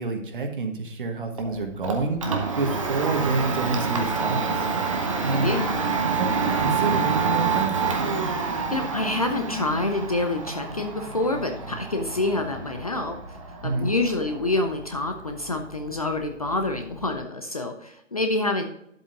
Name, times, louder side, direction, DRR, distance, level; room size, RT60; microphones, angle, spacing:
voice 1, 0.0-2.3 2.6-4.7 5.2-5.6 6.2-7.8 13.6-13.9, right 3 dB, 40° right, 5 dB, 1.4 m, -28 dB
Domestic sounds home sounds, 1.4-17.2, right 5 dB, 25° right, 0.8 m, -28 dB
voice 2, 5.2-5.7 8.4-13.2 13.5-18.6, left 2 dB, 30° left, 4 dB, 0.6 m, -27 dB
11.0 x 7.8 x 2.5 m, 0.77 s
figure-of-eight pair, 145°, 39 cm